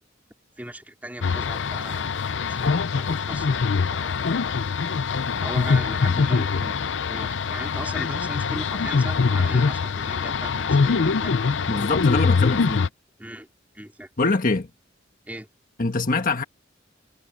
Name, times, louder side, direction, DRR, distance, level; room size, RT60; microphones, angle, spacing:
voice 1, 0.6-2.1 2.5-3.6 3.9-4.2 5.4-6.8 7.1-11.4 12.1-12.2 13.2-13.5 13.7-14.1 15.3-15.5, right 1 dB, 10° right, 4.1 m, -38 dB
sound 1, 1.2-12.9, left 5 dB, 70° left, 0.6 m, -23 dB
voice 2, 11.7-12.9 14.2-14.7 15.8-16.4, left 3 dB, 50° left, 1.3 m, -23 dB
head